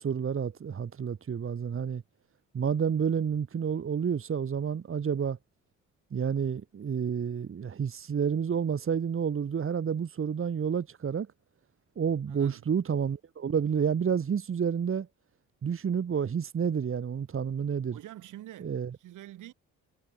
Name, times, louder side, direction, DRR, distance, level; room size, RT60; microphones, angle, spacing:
voice 1, 0.0-2.0 2.5-5.4 6.1-11.3 12.0-15.1 15.6-18.0 18.6-18.9, right 7 dB, 45° right, 2.7 m, -29 dB
voice 2, 12.3-12.7 17.9-19.5, right 14 dB, 80° right, 7.2 m, -46 dB
cardioid pair, 90°, 30 cm